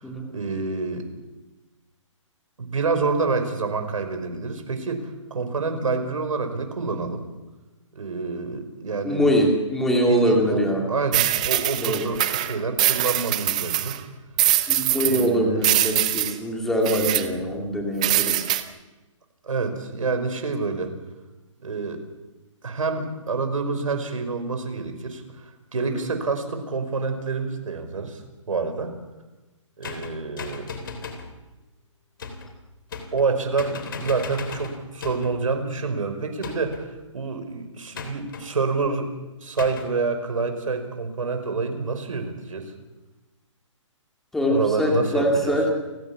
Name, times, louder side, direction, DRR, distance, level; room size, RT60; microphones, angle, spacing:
voice 1, 0.3-1.1 2.6-7.2 7.9-9.3 9.9-14.0 15.0-15.6 19.4-20.9 21.6-22.0 22.6-28.9 29.8-30.7 33.1-39.1 39.4-42.7 44.5-45.6, right 4 dB, 90° right, 7 dB, 5.6 m, -27 dB
voice 2, 9.0-10.8 11.7-12.1 14.7-18.5 25.9-26.0 44.3-45.7, equal, ahead, 1 dB, 2.3 m, -23 dB
sound 1, 11.1-14.0 14.4-15.3 15.6-16.3 16.9-17.2 18.0-18.6, right 14 dB, 15° right, 0.7 m, -23 dB
sound 2, 29.8-31.3 32.2-32.5 32.9-33.3 33.6-35.4 36.4-36.9 37.9-38.5 39.6-39.9, left 4 dB, 40° left, 3.4 m, -36 dB
29.5 x 15.5 x 7.3 m, 1.1 s
hypercardioid pair, 175°, 17 cm